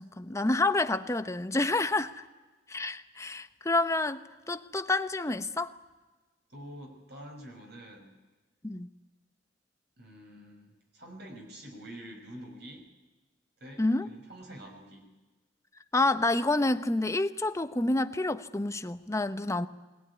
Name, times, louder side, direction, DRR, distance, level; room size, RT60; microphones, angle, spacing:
voice 1, 0.0-2.2 2.7-4.2 4.5-5.7 8.6-8.9 13.8-14.1 15.9-19.7, left 2 dB, 15° left, 0.8 m, -28 dB
voice 2, 6.5-8.2 10.0-12.8 13.6-15.1, equal, 65° right, 5.5 m, -47 dB
22.5 x 19.5 x 9.7 m
head